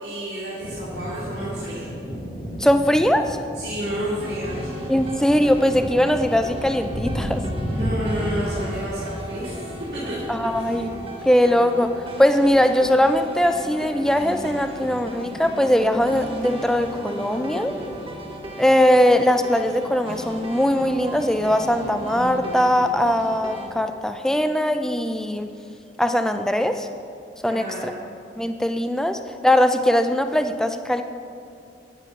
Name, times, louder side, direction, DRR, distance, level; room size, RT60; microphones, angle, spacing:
voice 1, 0.0-1.8 3.5-4.7 7.7-9.7 9.9-10.2 10.6-10.8 27.4-28.0, equal, 70° right, -11 dB, 2.7 m, -30 dB
sound 1, 0.6-11.1, equal, 20° left, 1.5 m, -33 dB
voice 2, 2.6-3.4 4.9-7.4 10.3-10.9 11.2-17.8 18.6-25.5 26.0-26.9 27.4-27.9 28.4-31.0, equal, 5° left, 8 dB, 0.4 m, -20 dB
sound 2, 4.2-23.7, equal, 30° right, 1.1 m, -37 dB
sound 3, 13.9-22.6, equal, 55° left, 1.3 m, -39 dB
10.0 x 8.3 x 5.6 m, 2.5 s
head